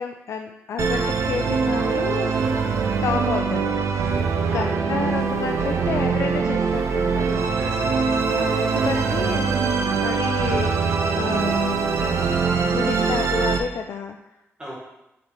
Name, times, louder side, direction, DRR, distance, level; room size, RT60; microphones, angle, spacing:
voice 1, 0.0-2.3 3.0-3.7 4.0-7.5 8.3-9.5 10.0-11.9 12.7-14.2, left 6 dB, 80° left, 4 dB, 0.4 m, -30 dB
Musical instrument, 0.8-13.6, right 5 dB, 85° right, 0.6 m, -22 dB
voice 2, 4.4-4.9 7.6-8.9 14.6-14.8, right 1 dB, 15° right, -6 dB, 1.3 m, -37 dB
6.7 x 4.0 x 4.4 m, 0.91 s
wide cardioid pair, 175°, 5 cm